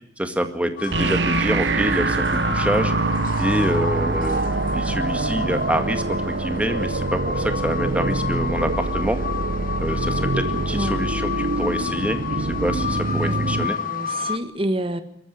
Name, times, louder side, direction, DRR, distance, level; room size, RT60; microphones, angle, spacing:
voice 1, 0.2-2.9 3.4-4.4 4.7-9.2 9.8-13.8, equal, 10° right, 6 dB, 2.0 m, -26 dB
sound 1, 0.8-14.4, left 5 dB, 50° left, 1.0 m, -31 dB
sound 2, 0.9-13.7, right 3 dB, 85° right, 1.0 m, -25 dB
voice 2, 10.7-11.1 13.2-15.0, right 1 dB, 30° right, 9 dB, 1.7 m, -28 dB
23.0 x 14.0 x 9.3 m, 0.74 s
head